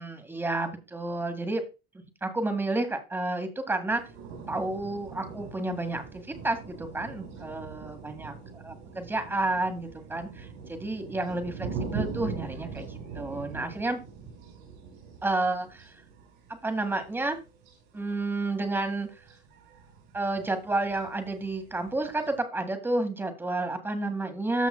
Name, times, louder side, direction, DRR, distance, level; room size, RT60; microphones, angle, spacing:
voice 1, 0.0-1.6 2.2-4.0 4.5-6.0 6.4-14.0 15.2-15.9 16.6-17.4 17.9-19.1 20.1-24.7, right 2 dB, 10° right, 7 dB, 1.7 m, -30 dB
sound 1, 3.9-22.4, right 5 dB, 65° right, 5.3 m, -42 dB
14.0 x 6.0 x 2.2 m, 0.29 s
supercardioid pair, 120°, 20 cm